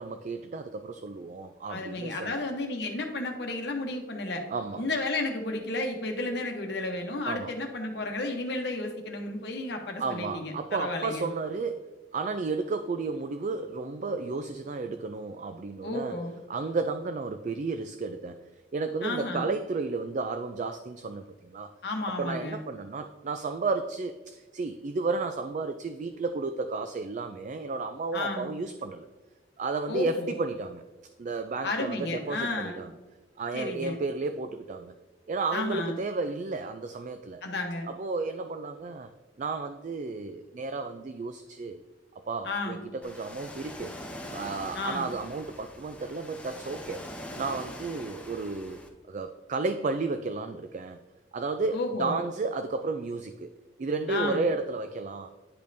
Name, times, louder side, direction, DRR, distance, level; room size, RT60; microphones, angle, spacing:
voice 1, 0.0-2.3 4.5-4.8 7.2-7.5 10.0-16.2 16.5-18.4 18.7-21.7 22.0-29.1 29.6-30.8 31.2-32.9 33.4-34.9 35.3-37.4 37.9-39.1 39.4-41.8 42.3-43.9 44.3-47.0 47.4-48.8 49.1-51.0 51.3-53.5 53.8-55.3, right 3 dB, 45° right, 8 dB, 0.3 m, -32 dB
voice 2, 1.7-4.4 4.7-11.3 15.8-16.3 19.0-19.5 21.8-22.6 28.1-28.5 29.9-30.3 31.6-32.8 33.5-34.0 35.5-36.0 37.4-37.9 42.4-42.9 44.7-45.1 51.7-52.2 54.1-54.5, left 2 dB, 65° left, 3 dB, 0.9 m, -32 dB
Ocean, 43.0-48.9, left 1 dB, 5° left, 0.7 m, -43 dB
10.0 x 5.2 x 2.7 m, 1.2 s
head